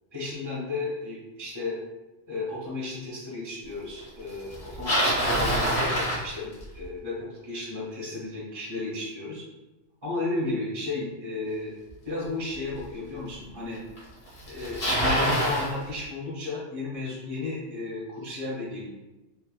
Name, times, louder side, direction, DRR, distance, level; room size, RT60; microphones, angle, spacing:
voice 1, 0.1-1.7 2.3-9.4 10.0-11.7 12.0-13.8 14.5-18.9, left 3 dB, 25° right, -6 dB, 0.6 m, -33 dB
Bicycle, 4.5-6.9 11.9-12.0 12.8-12.9 14.0-14.1 14.3-15.7, right 1 dB, 55° left, 1.1 m, -25 dB
3.2 x 2.1 x 2.3 m, 1.0 s
omnidirectional pair, 1.2 m